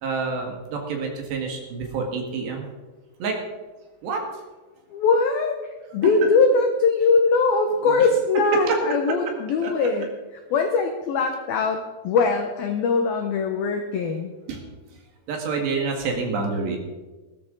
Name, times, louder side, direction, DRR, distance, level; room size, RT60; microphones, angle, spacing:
voice 1, 0.0-2.7 3.2-3.4 4.0-4.2 6.0-6.1 7.8-7.9 8.5-8.8 9.1-9.3 9.6-9.7 14.5-14.6 15.3-16.8, right 4 dB, 65° right, 2 dB, 3.8 m, -27 dB
voice 2, 4.9-5.6 5.9-10.1 10.5-14.3, left 4 dB, 90° left, 4 dB, 2.1 m, -21 dB
19.0 x 13.5 x 3.9 m, 1.2 s
omnidirectional pair, 5.8 m